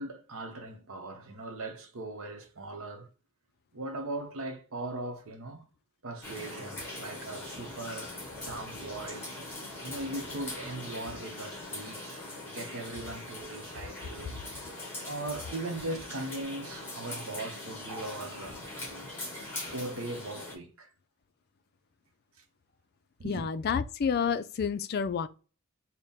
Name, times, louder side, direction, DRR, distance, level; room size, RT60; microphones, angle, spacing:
voice 1, 0.0-3.1 3.7-5.7 6.0-8.1 8.4-9.3 9.8-12.2 12.5-14.4 14.7-19.1 19.7-20.9 23.2-23.5, right 2 dB, 60° right, 0.8 m, -39 dB
sound 1, 6.2-20.6, left 2 dB, 10° left, 1.2 m, -41 dB
voice 2, 23.2-25.3, left 6 dB, 45° left, 0.3 m, -29 dB
3.6 x 2.1 x 4.0 m
head